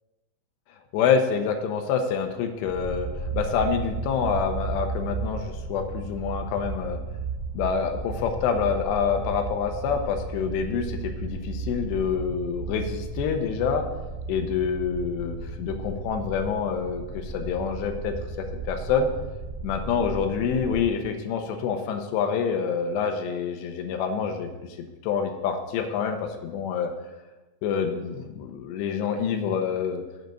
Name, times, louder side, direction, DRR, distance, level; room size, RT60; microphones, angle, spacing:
voice 1, 0.9-7.0 7.5-13.8 14.3-19.1 19.6-26.9 27.6-30.0, left 6 dB, 85° left, 5 dB, 2.9 m, -27 dB
sound 1, 2.6-20.9, right 3 dB, 75° right, 1.4 m, -34 dB
7.9 x 5.3 x 7.4 m, 1.1 s
omnidirectional pair, 5.0 m